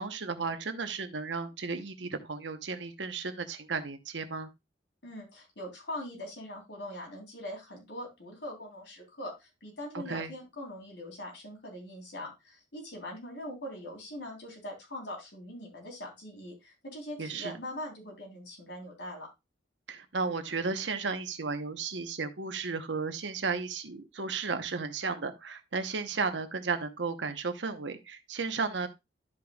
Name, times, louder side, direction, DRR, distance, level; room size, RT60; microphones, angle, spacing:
voice 1, 0.0-4.5 9.9-10.3 17.2-17.6 19.9-28.9, right 4 dB, 80° right, 1.0 m, -34 dB
voice 2, 5.0-19.3, left 1 dB, 75° left, 3.5 m, -42 dB
12.0 x 5.2 x 2.4 m
head